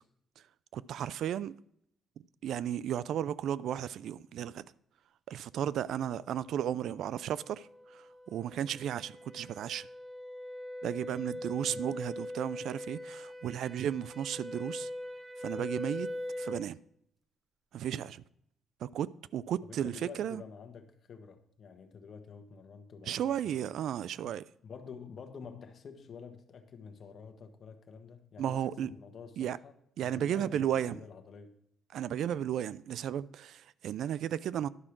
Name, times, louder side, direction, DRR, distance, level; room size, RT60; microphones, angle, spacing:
voice 1, 0.7-1.5 2.4-4.7 5.3-9.9 10.8-14.9 15.4-16.1 16.4-16.8 17.7-18.2 18.8-20.4 23.1-24.5 28.4-28.9 29.4-29.6 30.0-31.0 31.9-34.7, right 10 dB, 75° right, 0.3 m, -34 dB
sound 1, 6.8-16.7, left 1 dB, 5° right, 0.8 m, -42 dB
voice 2, 19.6-23.6 24.2-24.3 24.6-29.7 30.0-31.6, left 6 dB, 55° left, 1.2 m, -49 dB
11.0 x 4.9 x 6.0 m
cardioid pair, 90°, 0 cm